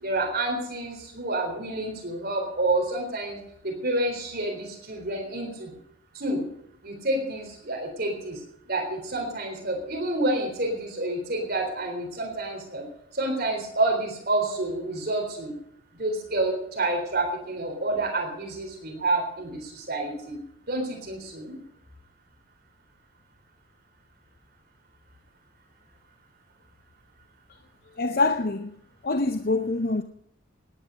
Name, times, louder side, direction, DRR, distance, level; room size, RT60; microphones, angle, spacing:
voice 1, 0.0-3.4 3.6-5.7 6.1-6.4 6.8-8.4 8.7-12.8 13.1-15.5 16.0-20.3 20.7-21.5, right 2 dB, 45° right, 3.9 m, -28 dB
voice 2, 28.0-28.7 29.0-30.0, left 3 dB, 45° left, 0.6 m, -25 dB
18.0 x 9.9 x 6.4 m
head